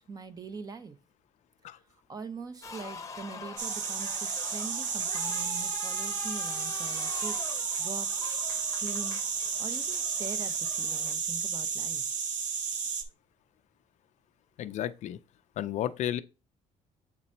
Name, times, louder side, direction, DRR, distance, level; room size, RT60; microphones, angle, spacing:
voice 1, 0.1-1.0 2.1-7.4 7.8-8.1 8.8-9.2 9.6-12.0, right 4 dB, 25° right, 0.7 m, -42 dB
sound 1, 2.6-11.1, left 5 dB, 20° left, 0.8 m, -44 dB
sound 2, 3.6-13.0, right 6 dB, 65° right, 1.1 m, -32 dB
voice 2, 14.6-15.2 15.6-16.2, left 11 dB, 55° left, 0.4 m, -32 dB
7.3 x 3.9 x 4.3 m
cardioid pair, 160°, 14 cm